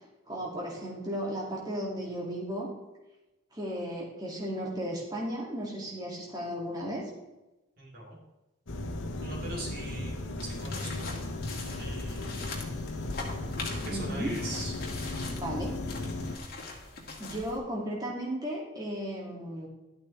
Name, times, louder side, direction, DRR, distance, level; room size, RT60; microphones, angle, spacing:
voice 1, 0.3-2.7 3.5-7.0 13.9-14.3 15.4-15.8 17.2-19.7, equal, 20° right, -3 dB, 2.4 m, -35 dB
voice 2, 7.8-8.2 9.2-11.1 11.8-12.7 13.7-14.7, right 1 dB, 50° right, -4 dB, 3.4 m, -41 dB
sound 1, 8.7-16.4, left 2 dB, 80° left, 1.0 m, -36 dB
sound 2, 10.4-17.6, left 3 dB, 50° left, 2.3 m, -42 dB
12.0 x 8.8 x 3.3 m, 1.0 s
head